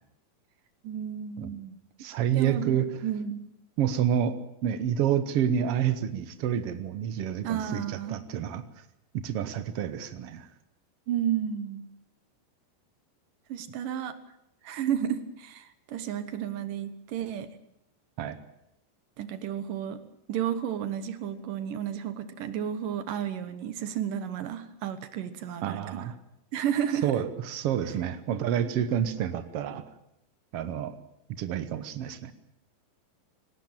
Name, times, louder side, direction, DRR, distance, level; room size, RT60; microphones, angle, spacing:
voice 1, 0.8-1.8 2.3-2.7 3.0-3.5 7.4-8.2 11.1-11.9 13.5-14.2 14.6-17.5 19.2-20.0 20.3-25.8 26.5-27.2, right 9 dB, 70° right, 11 dB, 2.7 m, -32 dB
voice 2, 2.0-2.8 3.8-4.4 4.6-8.6 9.1-10.5 18.2-18.4 25.6-26.1 27.0-29.8 30.5-31.0 31.4-32.3, right 9 dB, 85° right, 11 dB, 1.3 m, -28 dB
18.5 x 18.0 x 8.9 m, 0.80 s
omnidirectional pair, 4.3 m